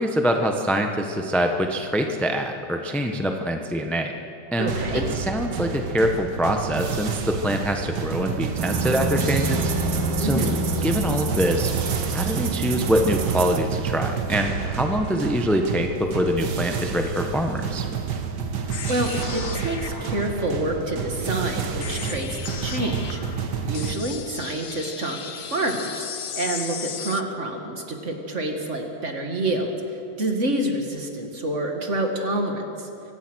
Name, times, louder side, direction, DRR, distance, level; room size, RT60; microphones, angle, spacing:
voice 1, 0.0-4.1 4.5-9.7 10.2-10.4 10.8-11.7 12.1-17.9, equal, ahead, 4 dB, 0.7 m, -24 dB
voice 2, 4.6-5.1 10.2-10.6 18.8-23.2 23.6-26.1 26.4-29.7 30.2-32.9, right 1 dB, 35° right, 3 dB, 2.2 m, -27 dB
sound 1, 4.7-24.0, right 6 dB, 60° right, 1.8 m, -30 dB
sound 2, 8.6-13.6, right 3 dB, 85° right, 2.2 m, -27 dB
sound 3, 18.7-27.2, left 8 dB, 85° left, 0.5 m, -36 dB
24.5 x 16.5 x 6.3 m, 2.6 s
omnidirectional pair, 2.2 m